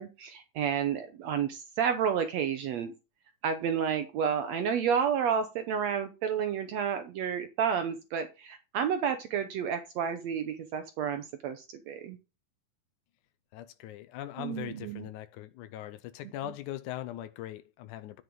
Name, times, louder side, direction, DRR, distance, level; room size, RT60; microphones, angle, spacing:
voice 1, 0.0-2.9 3.4-12.2 14.4-15.1, right 7 dB, 90° right, 1.5 m, -30 dB
voice 2, 13.5-18.2, left 13 dB, 80° left, 1.8 m, -40 dB
10.5 x 7.5 x 3.8 m
omnidirectional pair, 4.3 m